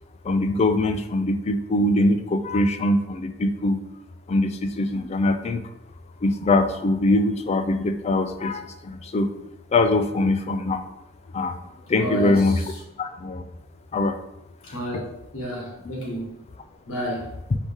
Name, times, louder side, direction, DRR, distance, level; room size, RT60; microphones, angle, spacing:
voice 1, 0.2-3.8 4.3-5.6 6.2-9.3 9.7-10.8 11.3-11.6 11.9-12.7 13.0-13.5 13.9-14.2 14.9-15.0, left 2 dB, 30° left, 8 dB, 0.3 m, -22 dB
voice 2, 12.0-12.4 14.6-15.0 15.3-16.4 16.9-17.3, equal, 85° left, -1 dB, 1.4 m, -30 dB
4.5 x 2.8 x 3.5 m, 0.86 s
head